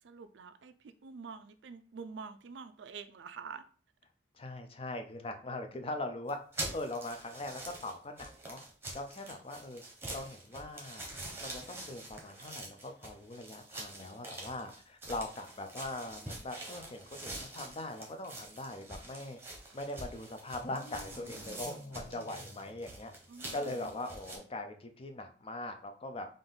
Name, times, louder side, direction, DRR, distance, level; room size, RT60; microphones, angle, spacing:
voice 1, 0.0-3.6 23.3-24.0, right 5 dB, 80° right, 0.4 m, -47 dB
voice 2, 4.3-6.4 6.7-8.6 8.9-9.8 10.1-11.1 11.4-19.4 19.7-23.1 23.5-26.3, left 2 dB, 30° left, 0.5 m, -41 dB
sound 1, 6.3-24.4, right 2 dB, 15° right, 0.9 m, -45 dB
sound 2, 20.5-23.7, left 1 dB, 75° left, 0.8 m, -52 dB
3.6 x 2.5 x 3.8 m
head